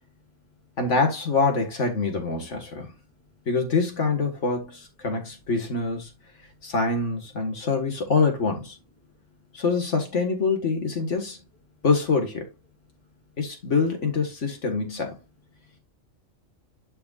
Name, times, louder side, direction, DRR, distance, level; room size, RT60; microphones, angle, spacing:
voice 1, 0.1-0.8 2.9-3.5 6.3-6.7 9.0-9.6 11.7-11.8 12.9-13.4 15.5-15.8, left 4 dB, 10° left, 2.4 m, -62 dB
voice 2, 0.8-2.9 3.5-6.1 6.6-8.8 9.5-11.4 11.8-12.5 13.4-15.2, left 4 dB, 75° left, 2.0 m, -25 dB
11.5 x 4.6 x 2.4 m
omnidirectional pair, 1.2 m